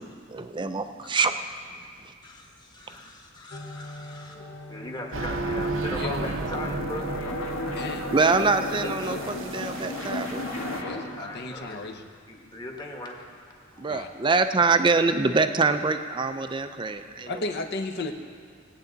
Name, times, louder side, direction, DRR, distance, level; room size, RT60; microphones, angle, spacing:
voice 1, 0.0-1.4 2.0-2.1 8.1-10.4 13.8-17.4, right 4 dB, 20° right, 9 dB, 0.5 m, -25 dB
voice 2, 2.2-4.4 4.7-7.1 10.9-12.0 12.3-13.2 13.7-14.2, left 1 dB, 20° left, 0 dB, 1.4 m, -39 dB
sound 1, 3.5-11.6, left 1 dB, 70° left, 1.8 m, -43 dB
sound 2, 5.1-10.8, right 3 dB, 65° right, 0.7 m, -33 dB
voice 3, 5.9-6.3 7.8-9.4 10.8-12.1 13.9-14.1 17.3-18.1, left 2 dB, 50° left, 6 dB, 0.9 m, -35 dB
sound 3, 6.5-11.2, left 2 dB, 90° left, 1.6 m, -34 dB
20.5 x 8.7 x 4.0 m, 2.1 s
head